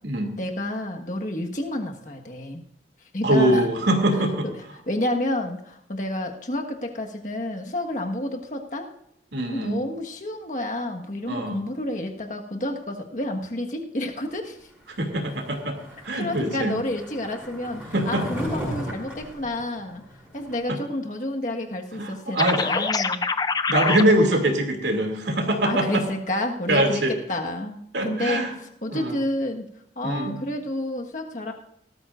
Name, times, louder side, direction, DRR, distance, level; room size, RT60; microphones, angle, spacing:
voice 1, 0.4-2.6 3.1-3.7 4.9-8.9 9.5-14.6 16.1-20.0 20.3-23.2 25.6-28.4 28.8-29.7 30.0-31.5, left 1 dB, 45° left, 2 dB, 1.5 m, -29 dB
voice 2, 3.2-4.5 9.3-9.8 11.3-11.6 15.0-15.8 16.0-16.8 17.9-18.3 21.9-22.7 23.7-26.0 26.7-27.1 27.9-28.5 28.9-29.1 30.0-30.4, right 1 dB, 75° right, 3 dB, 2.6 m, -23 dB
Skateboard, 15.2-20.6, equal, 5° right, 5.4 m, -36 dB
sound 1, 22.4-24.0, left 4 dB, 20° left, 0.4 m, -24 dB
18.0 x 13.5 x 2.5 m, 0.77 s
head